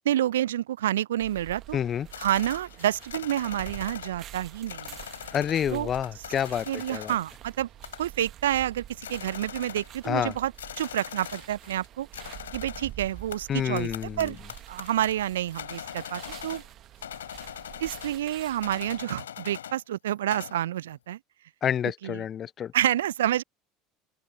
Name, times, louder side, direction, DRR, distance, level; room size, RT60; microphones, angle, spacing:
voice 1, 0.1-1.8 2.2-5.0 5.7-5.9 6.7-7.7 8.0-12.1 12.5-13.9 14.2-14.4 14.7-16.6 17.8-21.2 22.0-22.2 22.7-23.4, right 12 dB, 70° right, 0.4 m, -28 dB
sound 1, 1.2-19.0, right 12 dB, 45° right, 1.3 m, -47 dB
voice 2, 1.7-2.1 5.3-7.1 10.0-10.3 13.5-14.3 21.6-22.7, left 9 dB, 35° left, 0.6 m, -28 dB
sound 2, 2.1-5.7 5.9-7.3 7.8-8.3 8.6-8.7 8.9-11.9 12.1-16.7 17.0-18.2 18.6-19.8 20.1-20.6, left 10 dB, 75° left, 4.9 m, -41 dB
open air
figure-of-eight pair, 70°, 0 cm